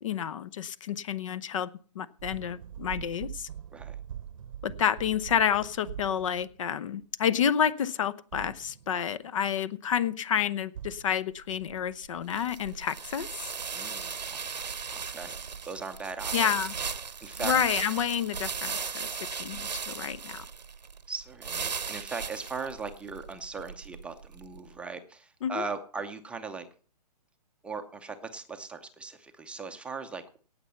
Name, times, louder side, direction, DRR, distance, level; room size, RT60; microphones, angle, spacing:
voice 1, 0.0-1.7 1.9-3.5 4.6-13.5 16.3-16.7 17.4-19.1 19.4-20.4 25.4-25.6, left 8 dB, 50° left, 19 dB, 0.8 m, -29 dB
sound 1, 2.2-6.9 8.3-9.2 10.7-11.1, right 10 dB, 50° right, 0.9 m, -43 dB
sound 2, 11.3-24.6, right 6 dB, 90° right, 1.1 m, -37 dB
voice 2, 13.7-15.3 15.6-16.5 17.2-17.5 21.1-26.7 27.6-30.4, right 4 dB, 5° right, 5 dB, 0.7 m, -39 dB
18.0 x 6.7 x 5.6 m, 0.41 s
hypercardioid pair, 140°, 21 cm